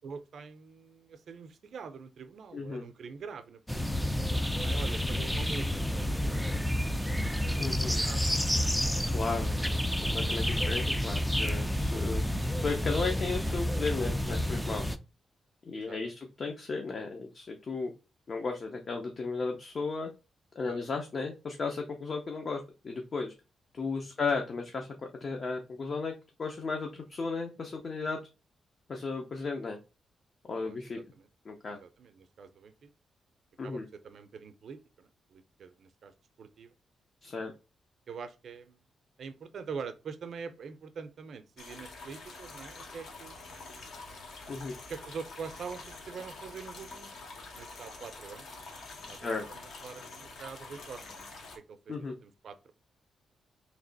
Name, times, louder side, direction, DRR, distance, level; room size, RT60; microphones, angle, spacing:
voice 1, 0.0-5.9 7.6-8.2 8.5-8.7 14.5-14.6 15.7-16.0 20.6-20.8 24.0-24.1 30.6-31.3 31.7-32.9 33.6-36.1 36.4-36.7 38.1-38.8 39.2-43.8 44.9-47.1 47.5-48.7 49.1-51.2 51.5-52.7, right 5 dB, 60° right, 0.5 m, -45 dB
voice 2, 2.5-2.8 7.6-7.9 9.1-9.6 10.0-12.2 12.6-14.8 15.7-17.9 18.3-20.1 20.6-23.3 23.7-24.9 25.2-26.1 26.4-28.2 28.9-29.8 30.5-31.0 31.4-31.8 33.6-33.9 37.2-37.5 44.5-44.7 49.2-49.4 51.9-52.2, left 4 dB, 45° left, 0.6 m, -34 dB
sound 1, 3.7-15.0, left 1 dB, ahead, 0.3 m, -30 dB
sound 2, 41.6-51.6, left 3 dB, 70° left, 1.1 m, -46 dB
3.2 x 2.9 x 3.9 m
cardioid pair, 120°, 0 cm